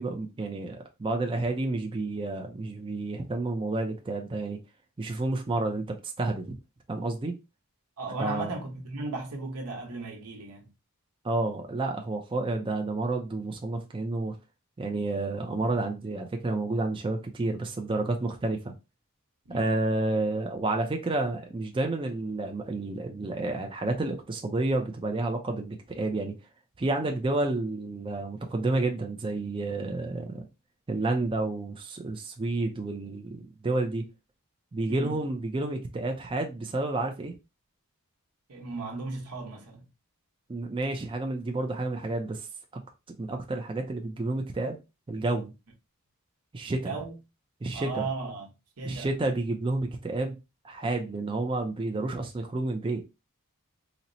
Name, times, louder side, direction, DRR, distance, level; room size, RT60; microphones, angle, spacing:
voice 1, 0.0-4.6 5.0-6.5 6.9-7.4 8.2-8.5 11.2-14.4 14.8-18.7 19.5-26.3 26.8-30.5 30.9-34.0 34.7-37.4 40.5-42.5 43.2-44.8 45.1-45.5 46.5-47.0 47.6-48.1 48.8-50.4 50.6-53.0, right 2 dB, 25° right, 0.4 m, -30 dB
voice 2, 8.0-10.7 19.4-19.8 34.9-35.2 38.5-39.9 46.7-47.2 47.7-48.5 48.8-49.1, right 3 dB, 85° right, 1.0 m, -36 dB
4.1 x 2.0 x 2.6 m
head